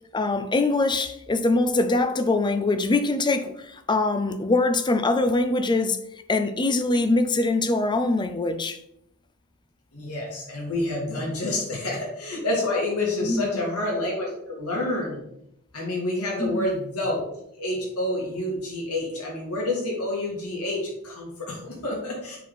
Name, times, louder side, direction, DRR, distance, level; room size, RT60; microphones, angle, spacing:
voice 1, 0.1-6.0 6.3-8.8 13.2-13.6 16.4-16.7, left 2 dB, 20° left, 0.5 m, -23 dB
voice 2, 9.9-15.2 15.7-17.2 17.6-22.4, left 1 dB, 90° left, 2.3 m, -28 dB
7.4 x 3.7 x 4.2 m
head